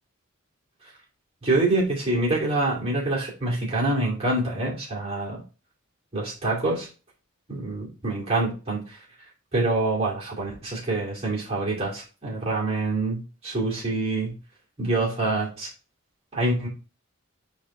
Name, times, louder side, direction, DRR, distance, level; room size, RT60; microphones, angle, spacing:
voice 1, 1.4-5.4 6.1-6.9 7.5-9.0 9.5-14.3 14.8-15.7 16.3-16.7, right 2 dB, 30° right, -5 dB, 2.5 m, -26 dB
8.7 x 3.2 x 3.7 m, 0.33 s
head